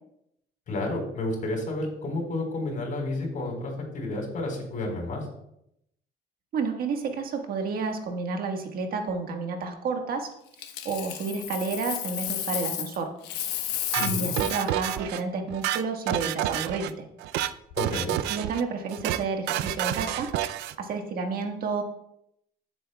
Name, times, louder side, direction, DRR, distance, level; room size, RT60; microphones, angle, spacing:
voice 1, 0.7-5.3 14.0-14.3 17.8-18.2, left 2 dB, 50° left, 1 dB, 4.0 m, -31 dB
voice 2, 6.5-10.3 10.8-13.1 13.8-17.1 18.3-21.8, right 4 dB, 60° right, 4 dB, 1.5 m, -31 dB
Coin (dropping), 10.6-13.0 13.2-14.7 17.5-17.7, left 11 dB, 90° left, 1.2 m, -32 dB
sound 1, 13.9-15.2 15.5-16.9 17.2-17.5 17.8-18.6 18.9-19.2 19.5-20.8, right 12 dB, 85° right, 0.5 m, -29 dB
15.0 x 7.8 x 2.3 m, 0.77 s
cardioid pair, 110°, 17 cm